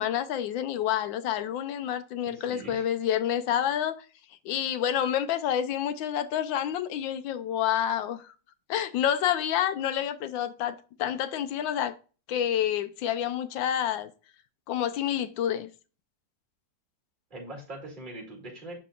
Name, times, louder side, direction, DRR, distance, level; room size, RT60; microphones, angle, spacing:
voice 1, 0.0-4.0 4.4-8.3 8.7-11.9 12.3-14.1 14.7-15.7, left 10 dB, 85° left, 1.4 m, -28 dB
voice 2, 2.3-2.9 17.3-18.8, right 1 dB, 25° right, 2.4 m, -42 dB
7.0 x 6.2 x 2.4 m
omnidirectional pair, 2.0 m